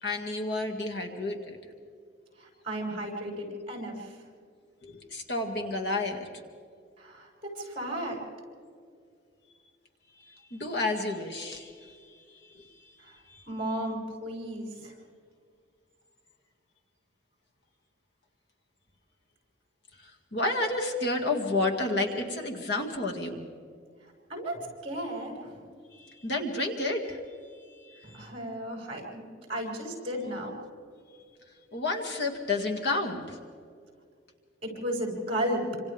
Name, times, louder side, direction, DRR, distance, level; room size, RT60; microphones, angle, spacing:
voice 1, 0.0-1.6 4.8-6.3 10.2-12.9 13.3-13.4 20.0-23.5 25.9-27.2 27.5-28.3 31.7-33.4, left 2 dB, 55° left, 1 dB, 2.2 m, -31 dB
voice 2, 2.4-4.2 7.0-8.2 13.0-13.2 13.5-14.9 24.3-25.7 28.0-30.5 34.6-35.8, equal, 30° right, -1 dB, 6.6 m, -34 dB
27.5 x 26.5 x 3.6 m, 2.2 s
head